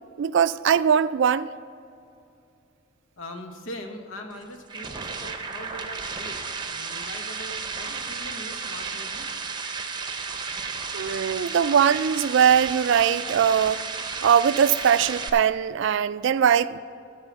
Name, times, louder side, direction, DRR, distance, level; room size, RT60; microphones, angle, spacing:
voice 1, 0.2-1.5 10.9-13.8 14.2-16.8, right 8 dB, 65° right, 0.3 m, -21 dB
voice 2, 3.2-6.4 6.6-9.4, left 1 dB, 85° left, 1.1 m, -41 dB
sound 1, 4.3-15.3, right 5 dB, 20° right, 0.7 m, -33 dB
13.0 x 4.8 x 7.1 m
head